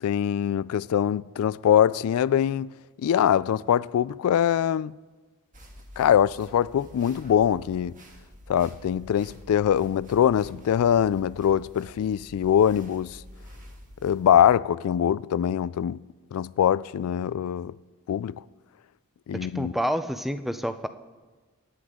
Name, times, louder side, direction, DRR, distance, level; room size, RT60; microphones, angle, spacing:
voice 1, 0.0-2.7 3.0-4.9 6.0-8.0 8.5-13.2 14.0-16.0 16.3-17.8 18.1-18.4 19.3-19.7, left 9 dB, 80° left, 0.3 m, -23 dB
sound 1, 5.5-14.5, equal, 35° right, 1.8 m, -48 dB
voice 2, 19.3-20.9, equal, ahead, 0.5 m, -29 dB
24.0 x 9.6 x 3.7 m
head